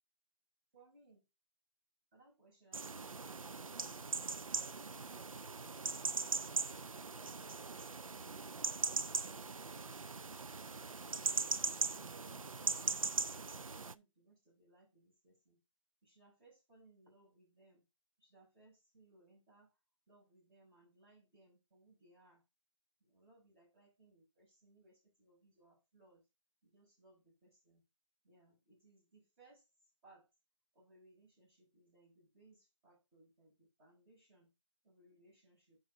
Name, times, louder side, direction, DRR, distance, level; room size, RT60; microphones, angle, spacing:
voice 1, 0.7-1.3 2.1-4.6 9.1-9.9 10.2-15.6 16.0-17.8 18.2-19.7 20.1-22.4 23.0-26.2 26.6-27.8 28.2-29.6 30.0-30.3 30.7-34.5 34.8-35.8, right 2 dB, 20° right, -4 dB, 6.1 m, -67 dB
sound 1, 2.7-13.9, right 4 dB, 80° right, 0.6 m, -40 dB
9.4 x 5.3 x 3.6 m, 0.24 s
figure-of-eight pair, 160°, 17 cm